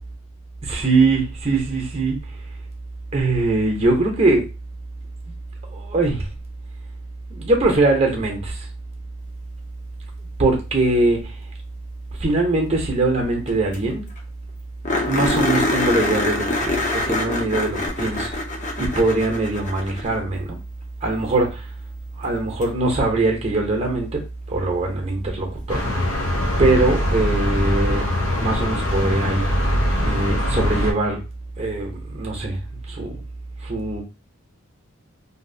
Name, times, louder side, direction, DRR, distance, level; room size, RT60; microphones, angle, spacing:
voice 1, 0.6-2.2 3.1-4.5 5.7-6.3 7.3-8.6 10.4-11.3 12.2-14.1 15.1-18.3 18.8-20.5 21.0-21.6 22.2-24.2 24.5-25.8 26.6-28.0 28.4-29.5 30.0-31.2 31.6-32.6 32.9-33.2 33.6-34.0, right 2 dB, 30° right, 0.7 m, -21 dB
sound 1, 13.5-13.6 13.7-13.8 14.2-14.3 14.8-20.3 22.6-22.7 25.6-25.7, left 2 dB, 35° left, 0.7 m, -24 dB
sound 2, 25.7-30.9, equal, 85° left, 0.7 m, -22 dB
2.7 x 2.6 x 2.6 m
head